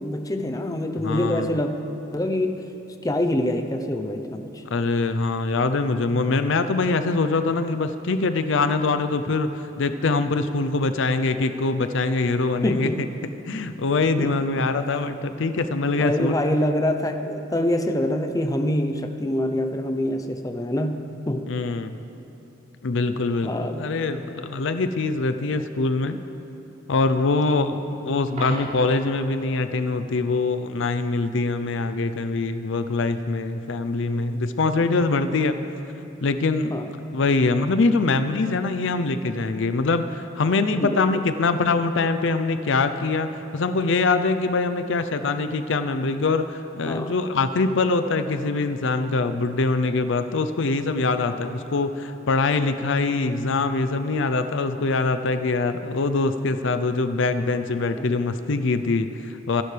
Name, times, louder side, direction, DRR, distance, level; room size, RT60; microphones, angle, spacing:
voice 1, 0.0-1.7 2.1-2.6 3.0-4.6 12.6-13.0 14.2-14.7 16.0-21.5 23.4-23.9 34.9-35.0 36.7-36.9 40.8-41.1 46.9-47.2 58.0-58.1, left 1 dB, 20° left, 6 dB, 0.7 m, -25 dB
voice 2, 1.0-1.6 4.7-9.5 9.8-12.9 13.5-16.4 21.5-22.0 22.8-26.2 26.9-35.6 36.2-36.7 37.1-59.6, left 3 dB, 70° left, 10 dB, 0.6 m, -23 dB
Coin (dropping), 28.3-29.1 35.2-35.4, right 1 dB, 45° right, 3.3 m, -36 dB
25.5 x 11.0 x 3.4 m, 2.9 s
head